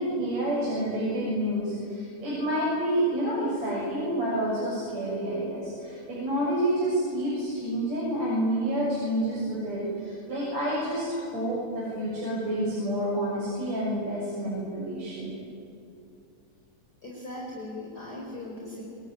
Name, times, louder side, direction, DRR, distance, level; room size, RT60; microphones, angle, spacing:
voice 1, 0.0-15.3, right 1 dB, 55° right, -6 dB, 8.0 m, -28 dB
voice 2, 17.0-18.8, left 1 dB, 30° left, -3 dB, 4.7 m, -39 dB
26.0 x 23.5 x 9.7 m, 2.5 s
omnidirectional pair, 3.7 m